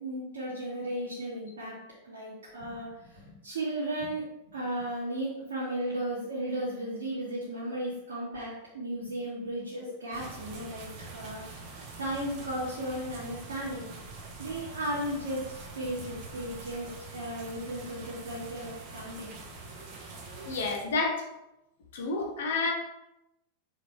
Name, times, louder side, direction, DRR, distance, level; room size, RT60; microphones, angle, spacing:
voice 1, 0.0-1.8 2.0-13.9 14.4-19.4, right 1 dB, 65° right, -10 dB, 2.3 m, -35 dB
sound 1, 10.1-20.8, right 3 dB, 45° right, 1.6 m, -44 dB
voice 2, 20.4-21.2 21.9-22.7, left 3 dB, 60° left, 0 dB, 1.6 m, -29 dB
6.7 x 5.0 x 3.4 m, 0.89 s
figure-of-eight pair, 90°, 0 cm